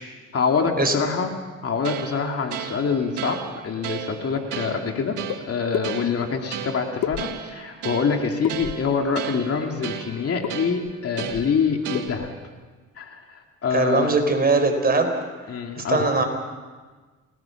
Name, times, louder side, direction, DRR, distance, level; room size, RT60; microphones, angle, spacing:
voice 1, 0.3-1.3 1.6-3.4 3.6-5.1 5.5-12.3 13.0-14.1 15.5-16.0, left 5 dB, 50° left, 3 dB, 2.6 m, -25 dB
sound 1, 1.8-12.5, right 10 dB, 85° right, 1.8 m, -35 dB
sound 2, 5.3-5.4 5.7-5.9 7.0-7.6 8.4-8.9 10.4-10.6 10.8-10.9 11.2-11.6 11.9-12.3, left 11 dB, 75° left, 1.0 m, -30 dB
voice 2, 13.7-15.1 15.8-16.2, right 3 dB, 30° right, 5 dB, 4.6 m, -20 dB
30.0 x 19.0 x 6.0 m, 1.4 s
cardioid pair, 90°, 30 cm